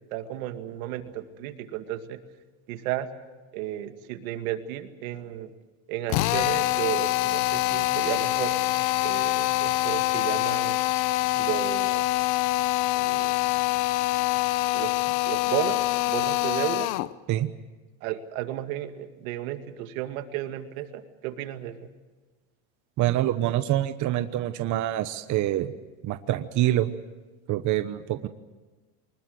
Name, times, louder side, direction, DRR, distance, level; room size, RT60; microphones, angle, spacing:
voice 1, 0.1-2.2 2.7-3.1 3.5-5.5 5.9-8.5 9.0-10.8 11.4-12.1 13.0-13.5 14.7-15.8 16.1-16.9 18.0-21.8, right 13 dB, 85° right, 8 dB, 2.3 m, -33 dB
Drill, 6.1-17.1, left 19 dB, 75° left, 1.0 m, -25 dB
voice 2, 23.0-25.7 26.0-26.9 27.5-28.3, right 13 dB, 45° right, 10 dB, 1.1 m, -25 dB
24.0 x 20.5 x 8.0 m, 1.2 s
supercardioid pair, 135°, 41 cm